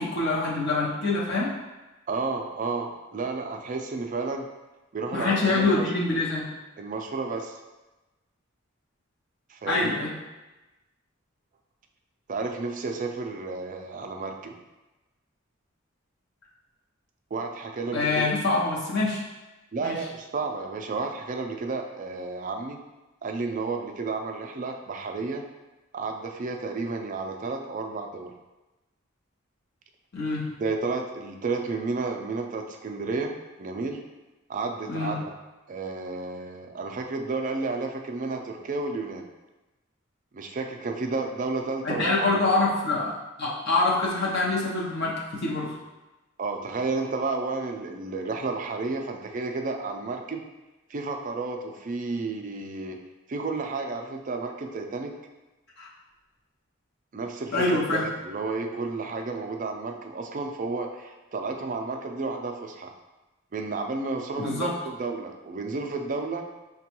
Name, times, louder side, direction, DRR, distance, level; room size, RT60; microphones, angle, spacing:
voice 1, 0.0-1.5 5.1-6.5 9.7-10.1 17.9-19.2 19.8-20.0 30.1-30.5 34.9-35.2 41.8-45.8 55.8-55.9 57.5-58.1 64.4-64.7, left 2 dB, 50° left, -5 dB, 0.6 m, -25 dB
voice 2, 2.1-4.5 4.9-5.8 6.8-7.6 9.5-9.9 12.3-14.6 17.3-18.3 19.7-22.8 23.2-25.4 25.9-28.3 30.6-34.0 34.5-35.2 35.7-39.3 40.3-42.5 46.4-50.4 50.9-53.0 53.3-55.1 57.1-62.9 63.5-66.5, right 3 dB, 40° right, 3 dB, 0.4 m, -32 dB
6.0 x 2.2 x 2.9 m, 1.1 s
head